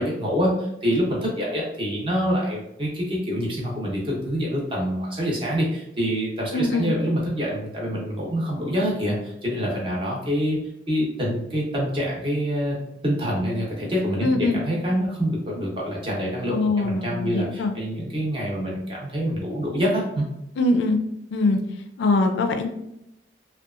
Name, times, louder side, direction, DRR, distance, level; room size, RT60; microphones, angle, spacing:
voice 1, 0.0-10.6 10.9-12.8 13.0-20.3, equal, 30° right, -3 dB, 0.7 m, -26 dB
voice 2, 6.5-6.9 14.2-14.6 16.5-17.7 20.6-21.0 21.3-21.6 22.0-22.7, left 2 dB, 75° left, 6 dB, 0.3 m, -22 dB
2.7 x 2.2 x 2.4 m, 0.82 s
head